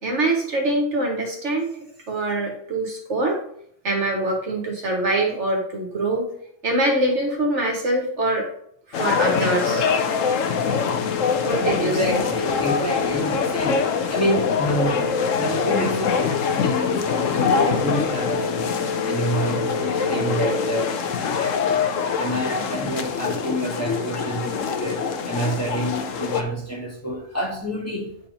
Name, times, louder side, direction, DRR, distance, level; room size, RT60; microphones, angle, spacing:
voice 1, 0.0-1.7 2.1-3.4 3.8-6.3 6.6-8.5 8.9-9.9 11.4-12.2, right 2 dB, 60° right, 1 dB, 1.8 m, -24 dB
sound 1, 8.9-26.4, left 5 dB, 70° left, 1.1 m, -24 dB
voice 2, 11.8-18.8 19.0-21.8 22.2-28.3, equal, 10° left, -3 dB, 1.8 m, -28 dB
8.7 x 4.3 x 5.3 m, 0.68 s
omnidirectional pair, 1.4 m